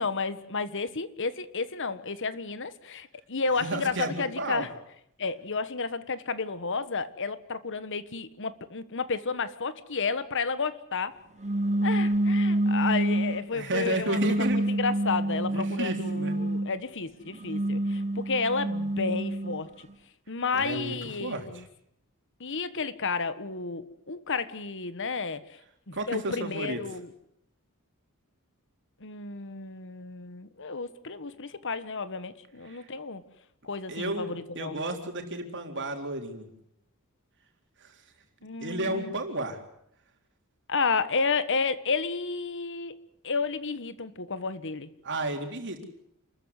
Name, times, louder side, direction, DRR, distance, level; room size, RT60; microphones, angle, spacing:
voice 1, 0.0-4.7 5.2-11.2 11.8-19.9 20.3-21.6 22.4-25.4 25.9-27.1 29.0-33.2 33.6-34.8 38.4-39.1 40.7-42.9 43.2-44.9, left 4 dB, 60° left, 13 dB, 1.5 m, -32 dB
voice 2, 3.6-4.7 13.5-14.6 15.5-16.4 20.5-21.6 25.9-26.8 32.7-32.9 33.9-36.5 37.8-37.9 38.6-39.6 45.0-45.8, right 2 dB, 55° right, 5 dB, 3.9 m, -32 dB
sound 1, 11.4-13.5 14.1-16.8 17.3-19.6, right 1 dB, 30° right, 0.9 m, -27 dB
28.5 x 14.0 x 9.7 m, 0.75 s
head